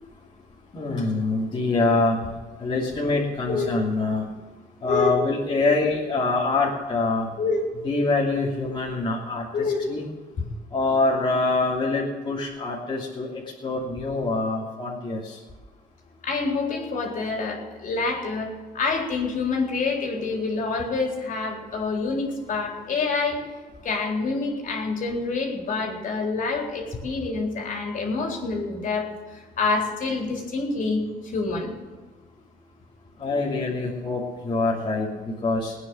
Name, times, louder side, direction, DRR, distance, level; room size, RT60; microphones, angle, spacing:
voice 1, 0.7-2.2 2.6-4.3 4.8-7.3 7.8-10.0 10.7-15.4 33.2-35.7, left 3 dB, 30° left, -4 dB, 3.0 m, -25 dB
voice 2, 16.2-23.4 23.8-29.1 29.6-31.0 31.3-31.7, left 4 dB, 50° left, 1 dB, 3.9 m, -27 dB
18.5 x 9.6 x 6.4 m, 1.3 s
cardioid pair, 110°, 17 cm